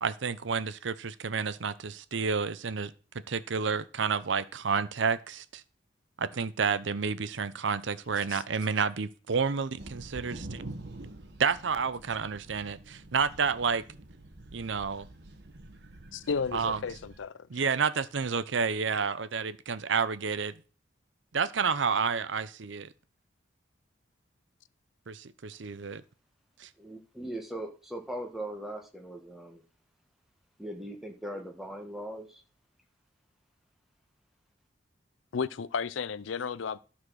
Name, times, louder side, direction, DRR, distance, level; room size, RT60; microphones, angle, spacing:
voice 1, 0.0-2.9 3.3-5.6 6.2-10.6 11.4-13.8 14.5-15.1 16.5-16.8 17.5-20.6 21.3-22.9 25.1-26.0 26.6-26.7, right 5 dB, 75° right, 0.6 m, -30 dB
sound 1, 9.8-17.2, right 2 dB, 60° right, 1.2 m, -46 dB
voice 2, 16.1-17.3 35.3-36.8, left 5 dB, 85° left, 0.5 m, -33 dB
voice 3, 26.8-29.6 30.6-32.4, right 1 dB, ahead, 1.5 m, -39 dB
12.5 x 4.3 x 6.3 m
head